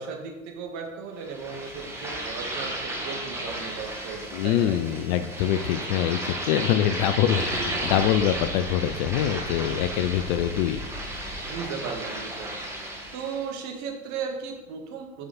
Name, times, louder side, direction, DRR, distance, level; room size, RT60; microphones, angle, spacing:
voice 1, 0.0-5.0 11.5-15.3, right 5 dB, 45° right, 2 dB, 1.8 m, -36 dB
sound 1, 1.2-13.5, right 1 dB, 5° right, 1.7 m, -34 dB
voice 2, 4.3-10.9, left 10 dB, 45° left, 12 dB, 0.5 m, -24 dB
sound 2, 6.8-11.7, left 2 dB, 60° left, 2.9 m, -41 dB
7.7 x 5.6 x 4.1 m, 1.0 s
figure-of-eight pair, 80°, 39 cm